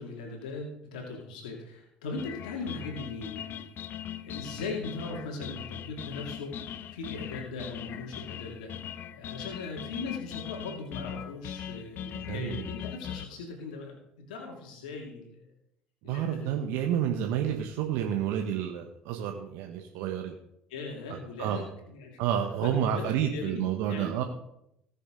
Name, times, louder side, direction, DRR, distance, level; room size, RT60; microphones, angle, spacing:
voice 1, 0.0-3.7 4.0-8.7 9.1-15.4 16.0-16.5 20.7-22.2 22.6-24.2, left 3 dB, 80° left, 0 dB, 2.4 m, -39 dB
sound 1, 2.2-13.2, left 10 dB, 55° left, 0.6 m, -40 dB
voice 2, 12.1-12.7 16.1-20.3 21.4-21.6 22.2-24.2, right 9 dB, 70° right, 3 dB, 1.2 m, -30 dB
20.0 x 6.9 x 3.8 m, 0.79 s
hypercardioid pair, 65°, 4 cm